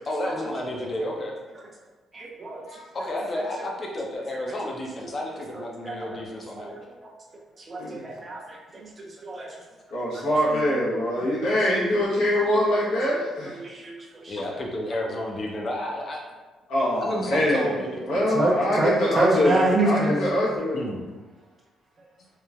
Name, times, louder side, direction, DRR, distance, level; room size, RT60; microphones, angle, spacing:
voice 1, 0.1-1.3 2.9-6.8 14.3-16.2 17.0-18.0 20.7-21.0, left 1 dB, 45° left, -1 dB, 0.6 m, -31 dB
voice 2, 2.1-2.6 3.3-3.4 5.5-6.2 6.6-7.1 7.6-9.5 11.4-11.5 13.1-13.2 13.5-14.4 18.1-20.3, right 2 dB, 35° right, -2 dB, 0.5 m, -27 dB
voice 3, 9.9-13.6 16.7-17.7 18.0-20.8, equal, 90° left, -8 dB, 1.0 m, -24 dB
3.0 x 2.1 x 2.4 m, 1.2 s
cardioid pair, 90°, 0 cm